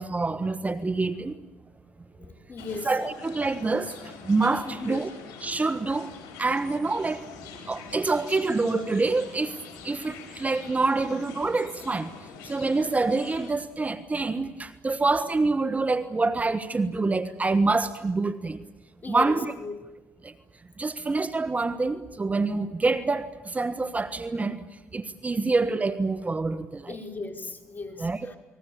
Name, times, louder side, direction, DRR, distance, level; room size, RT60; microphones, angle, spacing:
voice 1, 0.0-1.4 2.8-3.9 4.2-5.1 5.4-6.1 6.4-7.3 7.7-9.6 9.8-12.1 12.4-18.6 19.1-19.5 20.2-20.3 20.8-24.6 24.9-27.0 28.0-28.3, right 3 dB, 25° right, 13 dB, 1.5 m, -26 dB
voice 2, 2.2-2.9 4.6-5.0 12.5-12.6 19.0-19.8 26.9-28.4, left 3 dB, 30° left, 7 dB, 4.8 m, -37 dB
sound 1, 2.6-13.5, left 5 dB, 75° left, 5.7 m, -45 dB
29.5 x 21.0 x 8.7 m, 1.0 s
supercardioid pair, 65°, 6 cm